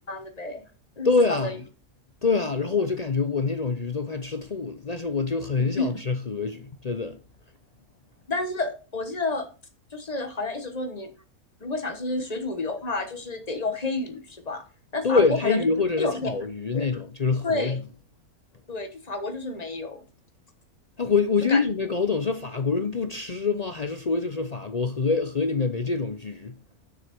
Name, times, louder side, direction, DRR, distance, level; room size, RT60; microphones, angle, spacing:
voice 1, 0.1-0.6 1.0-1.6 5.8-5.9 8.3-9.5 9.9-11.1 11.6-14.6 14.9-15.6 16.0-16.3 16.7-16.8 17.4-17.8 18.7-20.0 21.5-21.6, left 2 dB, 30° left, 1.3 m, -30 dB
voice 2, 1.0-1.5 2.2-7.2 15.0-17.8 21.0-26.5, left 4 dB, 45° left, 0.5 m, -25 dB
6.7 x 6.3 x 4.3 m
omnidirectional pair, 1.6 m